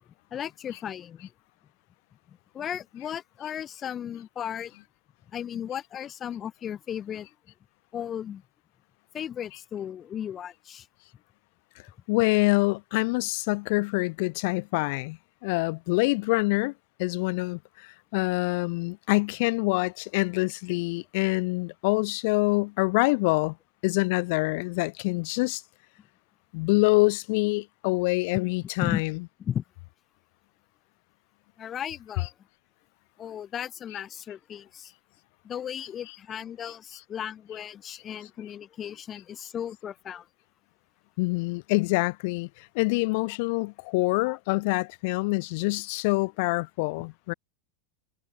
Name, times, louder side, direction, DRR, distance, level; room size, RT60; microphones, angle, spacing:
voice 1, 0.3-1.3 2.3-4.7 5.3-7.3 7.9-8.4 9.1-10.9 28.8-29.0 29.4-29.6 31.6-32.3 33.2-34.9 35.4-40.3 44.3-44.4, left 9 dB, 25° left, 3.5 m, -35 dB
voice 2, 12.1-16.7 17.0-23.6 23.8-25.6 26.5-29.1 41.2-47.3, left 26 dB, 50° left, 2.0 m, -26 dB
figure-of-eight pair, 85°, 0 cm